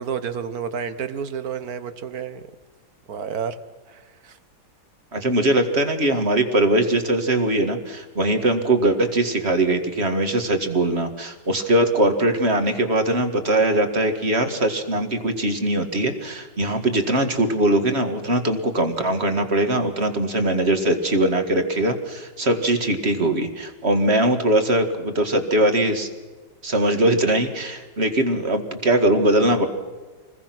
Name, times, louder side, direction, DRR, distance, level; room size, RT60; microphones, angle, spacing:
voice 1, 0.0-2.4 3.1-3.6 3.9-4.4, right 7 dB, 50° right, 12 dB, 1.4 m, -30 dB
voice 2, 5.1-26.1 26.6-29.7, right 1 dB, 30° right, 7 dB, 2.0 m, -21 dB
27.5 x 21.0 x 6.1 m, 1.4 s
omnidirectional pair, 2.3 m